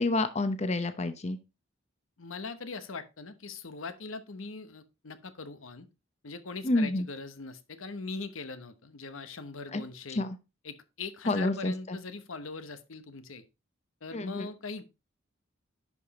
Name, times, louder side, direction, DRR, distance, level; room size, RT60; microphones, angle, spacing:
voice 1, 0.0-1.4 6.6-7.1 9.7-9.8 10.2-10.4 11.3-12.0 14.1-14.5, left 2 dB, 35° left, 0.8 m, -29 dB
voice 2, 2.2-5.9 6.2-10.2 10.6-13.4 14.0-14.8, left 4 dB, 85° left, 1.0 m, -41 dB
11.0 x 5.0 x 4.1 m
head